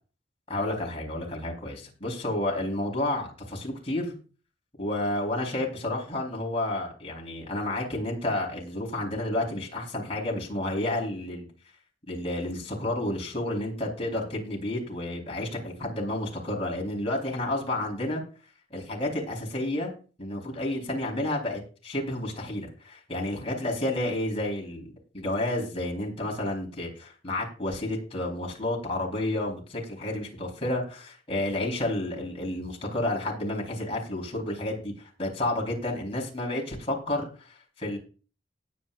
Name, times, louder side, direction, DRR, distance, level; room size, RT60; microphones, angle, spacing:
voice 1, 0.5-4.2 4.8-11.5 12.1-18.2 18.7-19.9 20.2-38.0, left 1 dB, 35° left, -2 dB, 4.3 m, -31 dB
19.0 x 9.0 x 2.6 m, 0.37 s
head